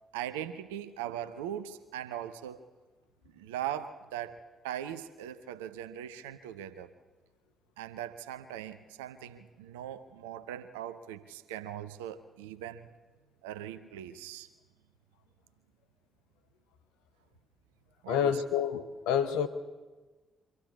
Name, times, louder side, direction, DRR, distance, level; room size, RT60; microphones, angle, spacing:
voice 1, 0.1-2.7 3.3-6.9 7.8-12.9 13.4-14.5 18.0-18.4, right 10 dB, 75° right, 12 dB, 0.7 m, -40 dB
voice 2, 18.1-19.5, left 8 dB, 70° left, 11 dB, 0.9 m, -28 dB
24.5 x 15.0 x 8.2 m, 1.3 s
figure-of-eight pair, 40°, 0 cm